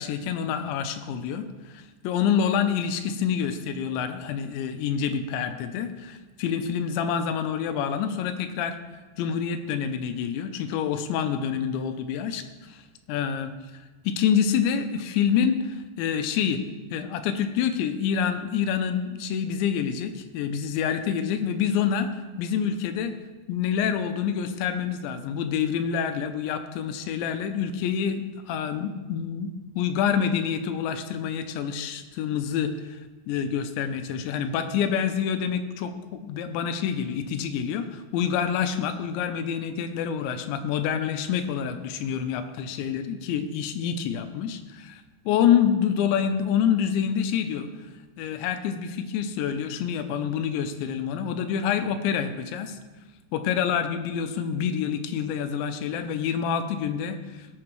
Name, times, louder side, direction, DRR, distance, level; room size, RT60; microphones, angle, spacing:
voice 1, 0.0-8.8 9.2-12.4 12.7-12.8 13.1-13.5 14.1-16.6 16.9-22.1 22.4-23.2 23.5-33.0 33.3-47.7 48.2-52.8 53.3-57.5, left 8 dB, 85° left, 8 dB, 3.0 m, -27 dB
18.0 x 8.2 x 3.2 m, 1.3 s
omnidirectional pair, 5.2 m